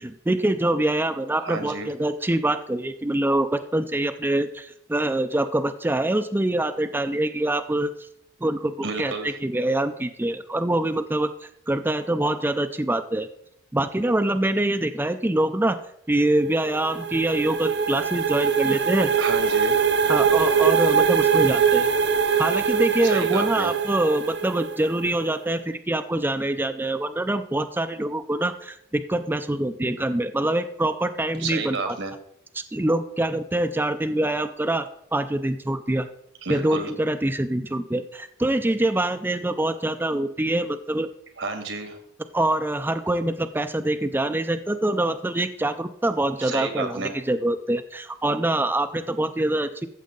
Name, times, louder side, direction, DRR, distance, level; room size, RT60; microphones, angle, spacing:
voice 1, 0.0-7.9 8.4-13.3 13.7-15.8 16.1-19.1 20.1-21.9 22.4-32.0 32.5-36.1 36.5-41.1 42.3-49.9, right 1 dB, 10° right, 8 dB, 0.4 m, -25 dB
voice 2, 1.4-1.9 8.8-9.4 19.2-19.8 23.0-23.7 31.4-32.1 36.4-36.9 41.4-42.0 46.4-47.1, right 3 dB, 80° right, 6 dB, 2.0 m, -30 dB
sound 1, 16.4-25.1, right 6 dB, 60° right, 0.7 m, -22 dB
14.0 x 7.4 x 3.8 m, 0.71 s
head